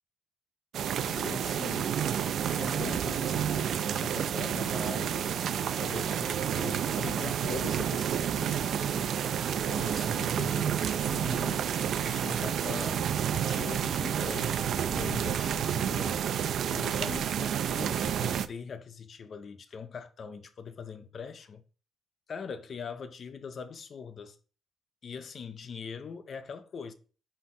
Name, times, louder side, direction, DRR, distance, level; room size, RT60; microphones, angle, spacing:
sound 1, 0.7-18.5, right 9 dB, 65° right, 0.4 m, -30 dB
voice 1, 1.0-2.0 2.6-5.3 5.8-9.1 9.5-11.7 12.1-16.2 16.7-21.6 22.3-24.4 25.0-26.9, left 6 dB, 45° left, 0.5 m, -42 dB
Chewing mastication, 8.9-14.9, right 4 dB, 40° right, 1.1 m, -50 dB
5.5 x 4.3 x 4.8 m
cardioid pair, 150°, 0 cm